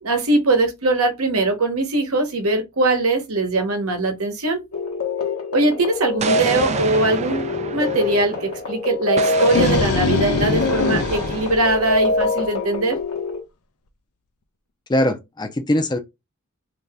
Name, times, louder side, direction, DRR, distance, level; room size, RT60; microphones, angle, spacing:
voice 1, 0.0-4.6 5.5-13.0, right 2 dB, 70° right, 1.0 m, -21 dB
sound 1, 4.7-13.4, left 3 dB, 70° left, 0.9 m, -25 dB
Explosion, 6.2-8.6 9.2-11.7, right 5 dB, 30° right, 0.3 m, -30 dB
sound 2, 9.2-12.4, left 3 dB, 85° left, 0.6 m, -23 dB
voice 2, 14.9-16.0, left 1 dB, 20° left, 0.5 m, -21 dB
2.8 x 2.7 x 3.4 m
head